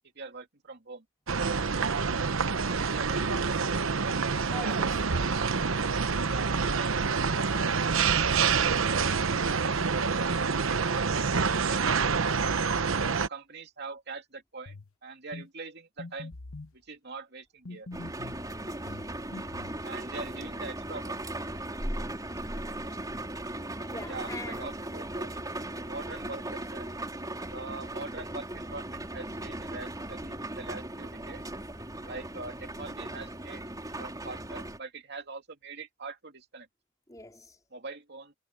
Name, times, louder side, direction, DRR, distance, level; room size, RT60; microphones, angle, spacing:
voice 1, 0.1-1.0 2.6-5.5 6.2-7.7 8.2-11.3 11.7-12.2 12.8-16.3 16.7-17.9 19.8-21.2 24.0-25.3 25.9-26.9 27.5-31.4 32.0-33.6 34.0-36.7 37.7-38.3, right 3 dB, 55° right, 2.8 m, -43 dB
sound 1, 1.3-13.3, right 5 dB, 75° right, 0.9 m, -27 dB
voice 2, 1.7-2.1 4.5-5.0 10.3-10.7 18.6-19.0 23.8-24.7 37.1-37.6, left 2 dB, 15° left, 4.3 m, -44 dB
sound 2, 14.7-14.9 15.3-15.5 16.0-16.7 17.7-18.4 18.9-19.8, left 2 dB, 85° left, 1.1 m, -43 dB
sound 3, 17.9-34.8, right 1 dB, 20° right, 4.1 m, -38 dB
head